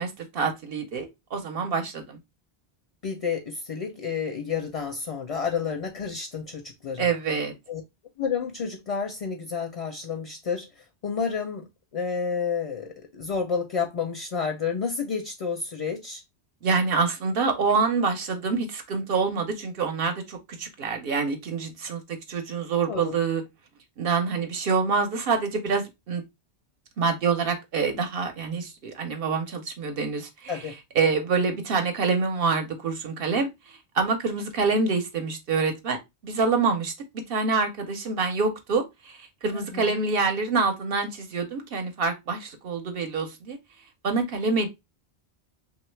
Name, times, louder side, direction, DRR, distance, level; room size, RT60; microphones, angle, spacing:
voice 1, 0.0-2.2 7.0-7.5 16.6-23.4 24.0-26.2 27.0-43.6 44.0-44.7, right 4 dB, 65° right, 0.8 m, -26 dB
voice 2, 3.0-7.1 7.7-7.8 8.2-11.7 11.9-16.2 22.9-23.2 30.5-30.8 39.5-40.0, left 6 dB, 45° left, 0.5 m, -30 dB
3.1 x 2.3 x 3.1 m
omnidirectional pair, 1.1 m